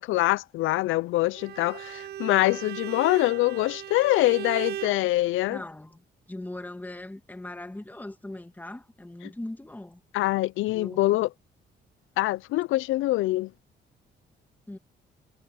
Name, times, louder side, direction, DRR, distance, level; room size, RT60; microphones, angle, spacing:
voice 1, 0.0-5.6 10.1-11.3 12.2-13.5, left 17 dB, 85° left, 0.5 m, -24 dB
Bowed string instrument, 1.3-5.0, right 11 dB, 55° right, 0.4 m, -37 dB
voice 2, 5.5-6.0 6.3-10.0 10.7-11.2 14.7-14.8, left 1 dB, 10° left, 1.8 m, -39 dB
cardioid pair, 90°, 20 cm